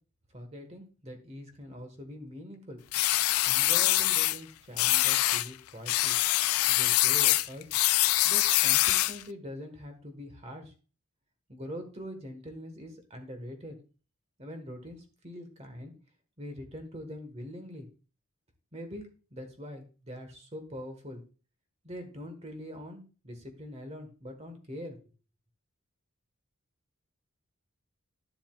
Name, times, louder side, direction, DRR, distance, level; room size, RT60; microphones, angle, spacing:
voice 1, 0.3-2.8 3.4-6.2 6.7-7.7 8.2-10.7 11.5-13.8 14.4-15.9 16.4-17.9 18.7-21.2 21.8-25.0, equal, 30° right, 6 dB, 1.4 m, -43 dB
sound 1, 2.9-4.4 4.8-5.5 5.9-9.2, left 16 dB, 85° left, 0.4 m, -24 dB
11.5 x 7.6 x 2.4 m, 0.35 s
head